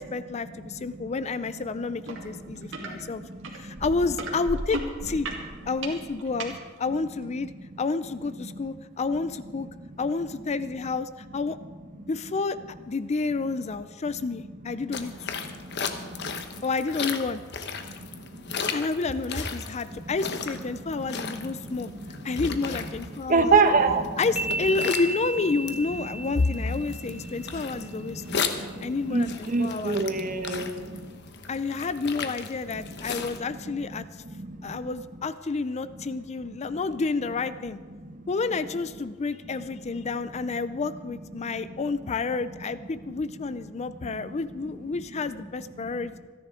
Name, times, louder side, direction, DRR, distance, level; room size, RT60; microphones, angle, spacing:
voice 1, 0.0-3.2 3.5-5.3 5.7-6.5 6.8-7.5 7.8-9.7 10.0-11.6 12.1-12.6 12.9-15.3 16.6-17.4 18.7-21.9 22.2-23.6 24.2-28.4 28.8-30.0 31.5-34.0 34.6-37.8 38.3-46.1, left 4 dB, 35° left, 13 dB, 0.4 m, -29 dB
voice 2, 0.6-1.1 1.8-1.9 2.1-3.8 8.4-8.8 9.5-9.6 11.9-12.1 15.0-16.7 17.8-18.7 19.9-20.1 20.5-22.5 23.1-24.2 26.2-31.1 32.7-33.0 33.4-34.8 36.4-36.8 37.9-38.3 39.7-39.8 41.4-41.7 43.8-44.7 45.8-46.1, right 4 dB, 40° right, 7 dB, 1.1 m, -31 dB
sound 1, 2.1-2.2 2.5-2.9 3.4-6.5 7.2-7.3, right 2 dB, 65° right, 2.3 m, -34 dB
sound 2, 14.9-33.4, left 5 dB, 55° left, 1.1 m, -36 dB
sound 3, 24.4-27.9, right 2 dB, 5° right, 1.0 m, -34 dB
27.0 x 10.5 x 3.8 m, 1.5 s
head